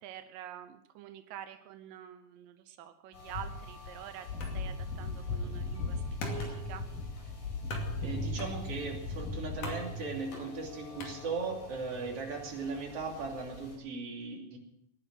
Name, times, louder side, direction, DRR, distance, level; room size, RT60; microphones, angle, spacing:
voice 1, 0.0-6.8, right 10 dB, 90° right, 9 dB, 2.6 m, -47 dB
sound 1, 3.1-13.7, left 3 dB, 90° left, 6.5 m, -40 dB
sound 2, 4.4-11.8, right 1 dB, 70° left, 4.0 m, -43 dB
voice 2, 8.0-14.6, right 4 dB, 45° right, 0 dB, 3.8 m, -38 dB
19.5 x 11.0 x 6.2 m, 0.78 s
omnidirectional pair, 3.8 m